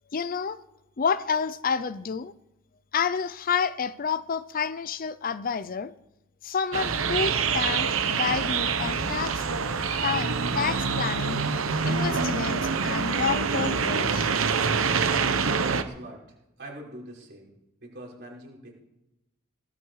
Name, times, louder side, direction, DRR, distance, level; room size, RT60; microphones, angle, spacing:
voice 1, 0.1-0.6 1.0-2.3 2.9-5.9 6.4-9.4 10.0-11.4 11.8-14.3, left 6 dB, 45° left, 0.5 m, -29 dB
sound 1, 6.7-15.8, right 5 dB, 90° right, 1.1 m, -26 dB
voice 2, 15.8-16.2 16.6-17.5 17.8-18.8, right 1 dB, 55° right, 5.5 m, -43 dB
19.0 x 12.5 x 4.8 m
head